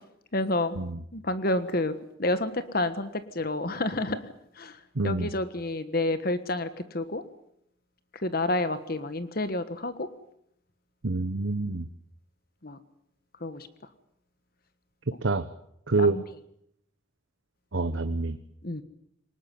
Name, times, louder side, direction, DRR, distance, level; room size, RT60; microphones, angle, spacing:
voice 1, 0.3-0.8 1.1-1.9 2.2-4.2 4.6-4.8 5.0-7.2 8.2-10.1 12.6-12.8 13.4-13.7 16.0-16.2 18.6-18.8, left 2 dB, 45° left, 11 dB, 1.5 m, -29 dB
voice 2, 5.0-5.3 11.0-11.9 15.2-15.5 15.9-16.2 17.7-18.4, right 3 dB, 65° right, 10 dB, 1.1 m, -26 dB
24.0 x 20.0 x 9.4 m, 0.74 s
head